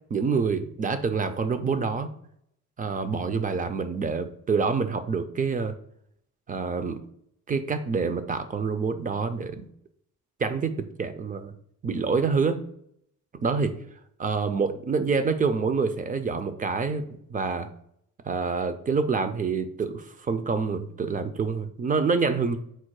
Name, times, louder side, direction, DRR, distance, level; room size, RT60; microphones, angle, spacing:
voice 1, 0.1-2.1 2.8-5.8 6.5-7.0 7.5-9.6 10.4-11.5 11.8-12.6 13.4-13.7 14.2-17.7 18.3-22.6, right 5 dB, 30° right, 10 dB, 0.4 m, -27 dB
4.3 x 2.1 x 4.6 m, 0.71 s
cardioid pair, 90°, 30 cm